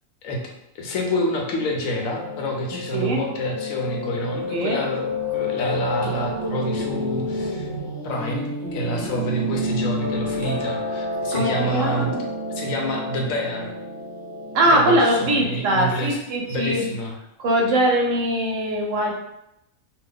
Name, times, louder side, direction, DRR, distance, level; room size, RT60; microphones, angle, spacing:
voice 1, 0.8-7.7 8.0-12.2 12.5-13.7 14.7-16.2 16.5-17.2, equal, 75° left, 1 dB, 1.0 m, -28 dB
Piano, 1.0-15.5, left 1 dB, 15° right, 0.7 m, -30 dB
voice 2, 4.5-4.8 11.3-12.1 14.5-16.9 17.4-19.1, right 1 dB, 70° right, 0 dB, 0.9 m, -21 dB
2.8 x 2.2 x 3.5 m, 0.84 s
omnidirectional pair, 1.5 m